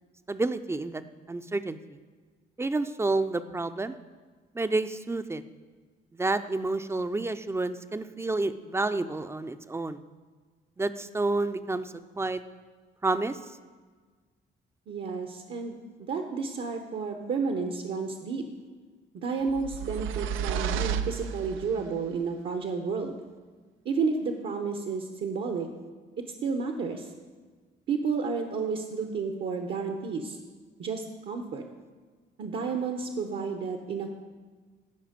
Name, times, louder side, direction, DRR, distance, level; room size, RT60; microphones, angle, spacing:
voice 1, 0.3-1.0 1.3-1.8 2.6-4.0 4.5-5.4 6.2-10.0 10.8-12.4 13.0-13.4, right 2 dB, 15° right, 11 dB, 0.5 m, -29 dB
voice 2, 14.9-15.8 16.1-18.4 19.2-23.2 23.8-25.7 26.4-27.1 27.9-30.4 30.8-31.6 32.4-34.1, right 5 dB, 60° right, 5 dB, 0.9 m, -31 dB
sound 1, 19.5-21.9, right 8 dB, 90° right, 0.4 m, -32 dB
13.5 x 5.1 x 5.1 m, 1.4 s
cardioid pair, 90°, 20 cm